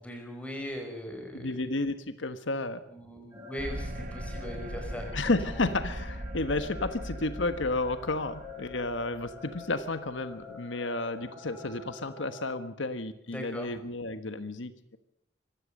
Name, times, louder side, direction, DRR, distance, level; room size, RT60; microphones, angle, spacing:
voice 1, 0.0-1.5 2.9-5.6 13.3-13.7, equal, 5° left, 3 dB, 5.0 m, -40 dB
voice 2, 1.3-2.8 5.1-15.0, left 2 dB, 85° left, 10 dB, 1.3 m, -32 dB
sound 1, 3.3-12.5, left 4 dB, 15° right, 5.8 m, -47 dB
sound 2, 3.6-10.1, right 1 dB, 40° right, 1.3 m, -39 dB
24.5 x 16.0 x 6.6 m, 0.76 s
head